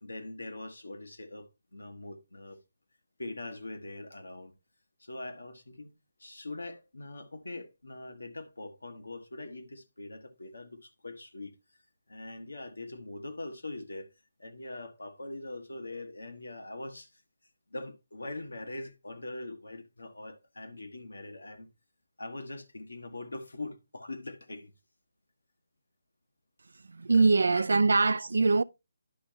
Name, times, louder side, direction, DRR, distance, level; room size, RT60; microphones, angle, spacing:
voice 1, 0.0-2.6 3.2-4.5 5.0-5.9 6.2-11.5 12.1-14.1 14.4-17.2 17.7-21.7 22.2-24.7 27.1-27.2 27.5-27.7, left 2 dB, 90° left, 1.2 m, -42 dB
voice 2, 26.9-28.6, right 3 dB, 75° right, 0.3 m, -23 dB
11.0 x 5.2 x 2.8 m
figure-of-eight pair, 150°, 0 cm